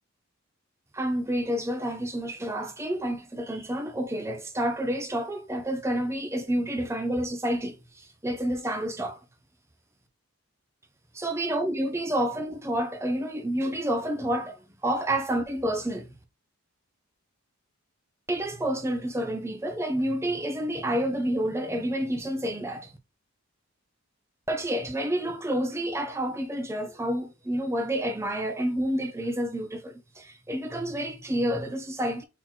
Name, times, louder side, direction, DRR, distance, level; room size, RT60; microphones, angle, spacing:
voice 1, 0.9-7.8 8.2-9.2 11.1-14.5 14.8-16.1 18.3-22.9 24.5-32.2, right 1 dB, 10° right, 0.6 m, -29 dB
4.0 x 2.9 x 4.4 m
head